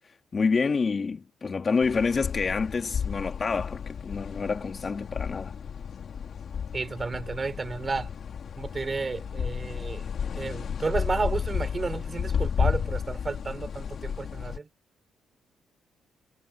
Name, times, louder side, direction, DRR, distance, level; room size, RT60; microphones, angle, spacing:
voice 1, 0.3-5.5, left 4 dB, 35° left, 2.0 m, -27 dB
sound 1, 1.8-14.6, left 7 dB, 55° left, 1.9 m, -32 dB
voice 2, 6.7-8.1 8.6-10.0 10.3-14.7, right 4 dB, 30° right, 4.1 m, -32 dB
cardioid pair, 90°, 0 cm